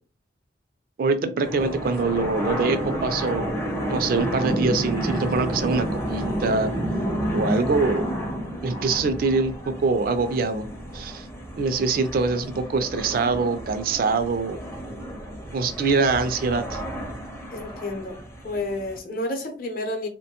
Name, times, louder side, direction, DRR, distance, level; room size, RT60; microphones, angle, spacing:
voice 1, 1.0-3.5 3.9-6.7 7.3-8.1 8.6-10.7 10.9-11.3 11.6-14.6 15.5-16.8, right 4 dB, 55° right, 9 dB, 0.3 m, -24 dB
sound 1, 1.4-19.0, equal, 15° left, 0.5 m, -30 dB
voice 2, 17.5-20.1, left 1 dB, 55° left, 4 dB, 0.7 m, -30 dB
2.9 x 2.1 x 2.8 m, 0.37 s
head